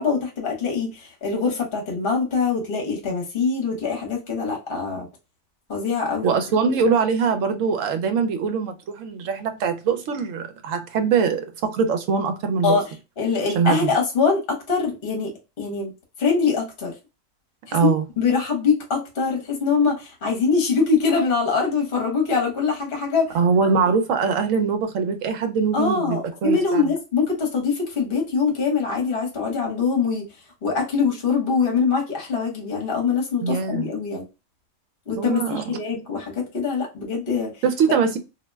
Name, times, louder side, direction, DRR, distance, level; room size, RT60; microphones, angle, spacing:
voice 1, 0.0-5.1 5.7-6.4 12.6-15.9 16.2-16.9 17.7-23.4 25.7-30.3 30.6-34.2 35.1-37.6, left 5 dB, 45° left, 1.0 m, -23 dB
voice 2, 6.2-12.8 13.6-13.9 17.7-18.1 23.3-26.8 33.4-33.9 35.2-36.0 37.6-38.2, right 5 dB, 75° right, 1.0 m, -22 dB
2.5 x 2.1 x 3.3 m
omnidirectional pair, 1.4 m